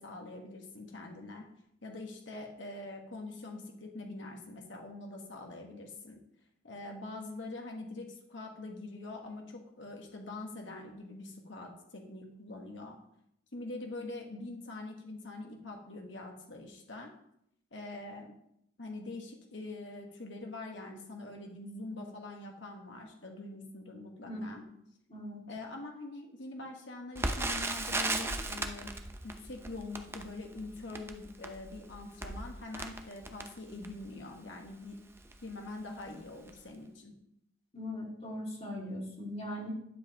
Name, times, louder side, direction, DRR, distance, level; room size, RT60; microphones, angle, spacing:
voice 1, 0.0-1.5 1.8-6.2 6.6-13.0 13.5-17.1 17.7-18.3 18.8-24.6 25.5-28.9 29.2-35.0 35.4-37.1, left 2 dB, 75° left, 1 dB, 1.4 m, -44 dB
voice 2, 25.1-25.4 37.7-39.7, left 1 dB, 35° left, -2 dB, 2.3 m, -39 dB
Crackle, 27.2-34.1 34.7-34.8 35.1-35.4 36.0-36.2 36.5-36.6, right 2 dB, 15° right, 0.6 m, -37 dB
11.0 x 7.2 x 3.0 m, 0.75 s
head